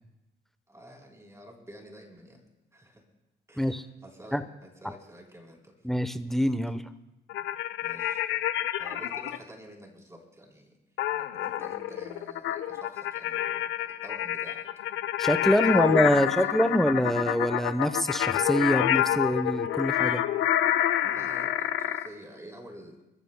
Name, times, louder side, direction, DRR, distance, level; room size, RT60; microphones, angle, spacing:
voice 1, 0.7-2.4 2.7-3.0 3.5-5.8 7.8-8.4 8.8-10.8 11.2-14.7 15.5-16.6 21.0-23.0, equal, 15° right, 0 dB, 3.5 m, -49 dB
voice 2, 5.8-6.8 15.2-20.2, equal, ahead, 11 dB, 0.8 m, -25 dB
sound 1, 7.3-9.4 11.0-22.1, left 12 dB, 85° left, 0.7 m, -28 dB
28.5 x 14.0 x 2.2 m, 0.97 s
cardioid pair, 90°, 20 cm